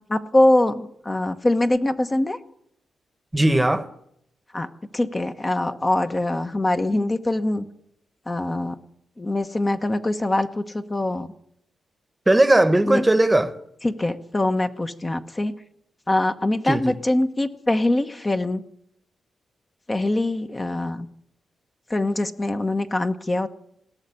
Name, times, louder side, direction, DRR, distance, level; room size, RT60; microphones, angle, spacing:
voice 1, 0.1-2.4 4.5-7.7 8.3-8.8 9.2-11.3 12.9-13.0 13.8-15.5 16.1-18.6 19.9-21.1 21.9-23.5, left 1 dB, 25° left, 7 dB, 1.0 m, -23 dB
voice 2, 3.3-3.9 12.3-13.5 16.7-16.9, right 1 dB, 15° right, 12 dB, 1.1 m, -18 dB
18.0 x 6.7 x 9.7 m, 0.72 s
cardioid pair, 70°, 0 cm